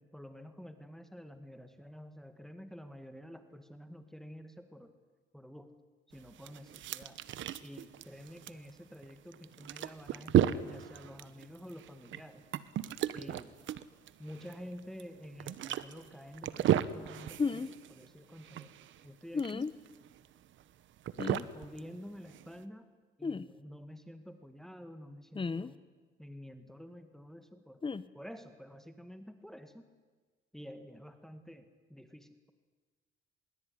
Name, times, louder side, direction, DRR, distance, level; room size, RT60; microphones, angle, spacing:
voice 1, 0.0-4.9 5.3-5.7 6.1-7.2 7.6-12.4 13.1-13.5 14.2-18.7 19.0-19.8 21.5-22.9 23.2-25.8 26.2-27.8 28.1-29.8 30.5-32.5, equal, ahead, 8 dB, 1.9 m, -49 dB
sound 1, 6.1-22.6, right 11 dB, 75° right, 1.1 m, -35 dB
sound 2, 17.4-17.7 19.3-19.7 21.2-21.4 23.2-23.4 25.3-25.7 27.8-28.0, left 4 dB, 25° left, 1.0 m, -33 dB
25.0 x 22.0 x 9.8 m, 1.4 s
cardioid pair, 90°, 20 cm